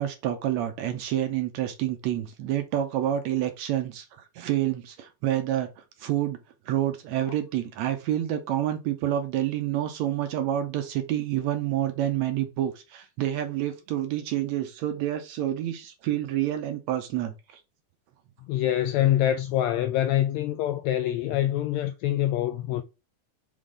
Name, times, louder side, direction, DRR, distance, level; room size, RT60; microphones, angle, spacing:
voice 1, 0.0-6.4 6.7-17.6, right 12 dB, 75° right, 1.7 m, -28 dB
voice 2, 18.5-22.8, left 12 dB, 85° left, 1.6 m, -25 dB
5.3 x 3.8 x 4.8 m
omnidirectional pair, 3.6 m